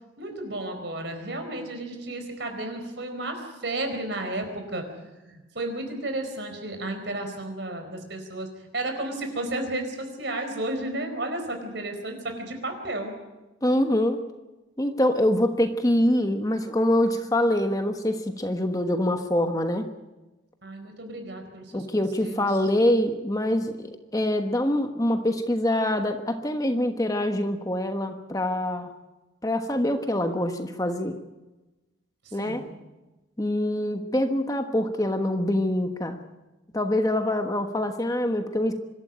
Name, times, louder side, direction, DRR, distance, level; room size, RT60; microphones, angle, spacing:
voice 1, 0.2-4.8 5.3-8.5 8.7-13.1 20.6-22.4 32.2-32.6, right 2 dB, 60° right, 5 dB, 4.5 m, -33 dB
voice 2, 13.6-14.2 14.8-19.9 21.7-28.9 29.4-31.2 32.3-32.6 33.4-36.2 36.7-38.7, left 1 dB, 20° left, 6 dB, 1.2 m, -25 dB
25.0 x 13.0 x 9.2 m, 1.1 s
head